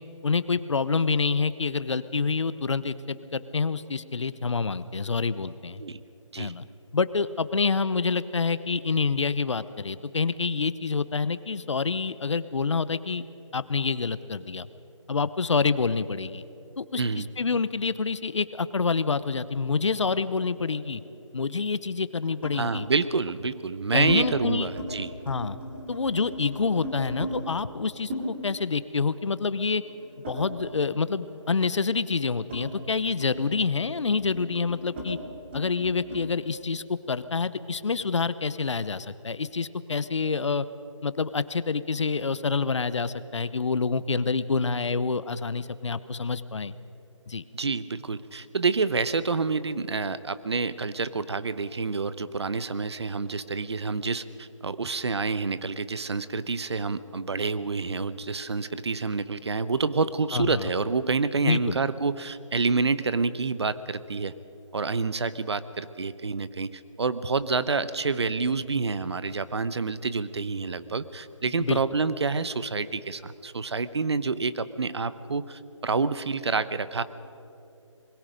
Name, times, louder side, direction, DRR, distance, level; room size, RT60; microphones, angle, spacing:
voice 1, 0.2-5.8 6.4-6.6 6.9-13.2 13.5-14.7 15.1-16.4 16.8-21.0 21.3-22.9 23.9-24.7 25.3-25.6 25.9-29.8 30.2-35.2 35.5-40.7 41.0-46.8 47.3-47.4 60.3-60.7 61.4-61.8 71.6-71.8, left 4 dB, 65° left, 15 dB, 0.9 m, -27 dB
sound 1, 19.8-21.1 22.4-22.7 23.4-24.2 24.6-24.9 25.2-27.3 28.1-31.0 31.3-36.3, equal, 20° right, 2.9 m, -39 dB
voice 2, 22.5-25.1 47.5-64.3 64.7-77.0, right 4 dB, 55° right, 15 dB, 1.0 m, -28 dB
27.0 x 21.5 x 5.2 m, 2.9 s
figure-of-eight pair, 170°, 16 cm